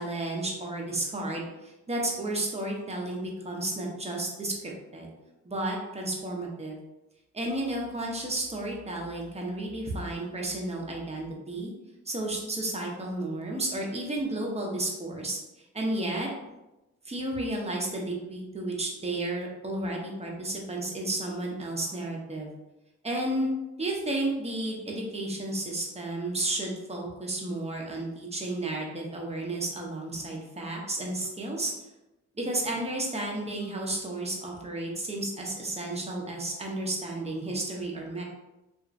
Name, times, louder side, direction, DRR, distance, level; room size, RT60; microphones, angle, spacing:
voice 1, 0.0-5.1 5.4-6.8 7.3-11.7 12.1-15.4 15.7-16.3 17.0-22.5 23.0-23.5 23.8-31.7 32.4-38.2, right 1 dB, 20° right, -1 dB, 0.8 m, -32 dB
2.8 x 2.5 x 2.4 m, 0.99 s
cardioid pair, 70°, 32 cm